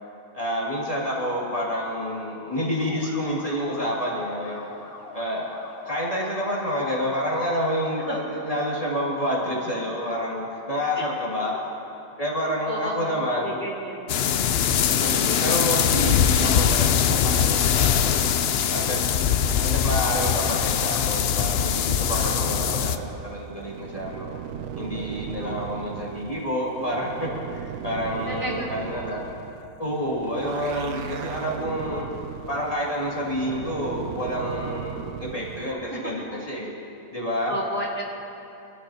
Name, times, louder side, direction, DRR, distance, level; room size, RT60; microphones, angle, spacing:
voice 1, 0.3-4.7 5.1-5.5 5.9-11.5 12.2-13.6 15.0-18.3 18.7-19.0 19.6-24.3 24.8-29.2 29.8-32.1 32.5-36.7 37.1-37.5, equal, 25° left, -6 dB, 2.4 m, -28 dB
sound 1, 2.8-8.2, left 3 dB, 80° left, 2.3 m, -43 dB
voice 2, 12.7-14.1 25.4-25.6 28.3-28.7 37.5-38.0, right 1 dB, 35° right, -6 dB, 2.4 m, -32 dB
sound 2, 14.1-23.0, left 8 dB, 65° left, 0.6 m, -22 dB
sound 3, 22.1-35.7, right 8 dB, 80° right, 1.1 m, -37 dB
24.5 x 13.0 x 2.8 m, 2.8 s
omnidirectional pair, 1.5 m